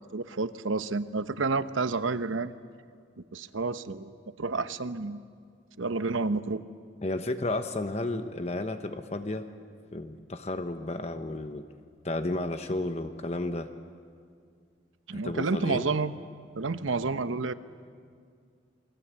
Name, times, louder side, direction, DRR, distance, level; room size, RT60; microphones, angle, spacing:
voice 1, 0.0-2.5 3.3-5.2 5.8-6.6 15.1-16.1 16.6-17.5, right 3 dB, 90° right, 12 dB, 0.9 m, -30 dB
voice 2, 7.0-9.5 9.9-11.6 12.0-13.7 15.1-15.9, left 2 dB, 35° left, 8 dB, 0.9 m, -32 dB
28.5 x 22.0 x 8.3 m, 2.1 s
head